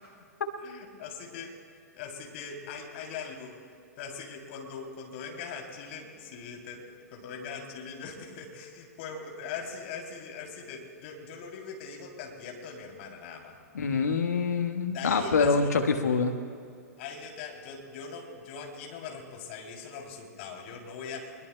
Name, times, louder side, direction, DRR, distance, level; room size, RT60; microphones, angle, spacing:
voice 1, 0.6-1.5 1.9-3.6 4.0-6.8 7.1-13.6 14.9-15.8 17.0-21.5, left 5 dB, 45° left, 1 dB, 3.0 m, -41 dB
voice 2, 13.7-16.4, left 4 dB, 70° left, 6 dB, 1.4 m, -25 dB
23.0 x 22.0 x 2.2 m, 2.4 s
figure-of-eight pair, 105°, 9 cm